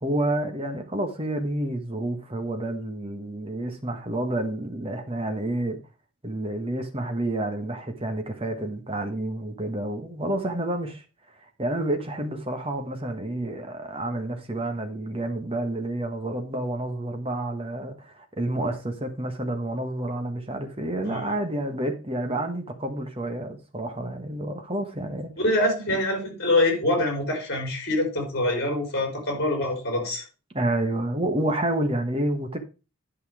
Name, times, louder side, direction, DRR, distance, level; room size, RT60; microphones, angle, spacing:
voice 1, 0.0-5.8 6.2-11.0 11.6-25.4 30.5-32.6, right 1 dB, 25° right, 1.3 m, -29 dB
voice 2, 25.4-30.2, left 1 dB, 50° left, 4.9 m, -25 dB
11.0 x 5.5 x 4.8 m
head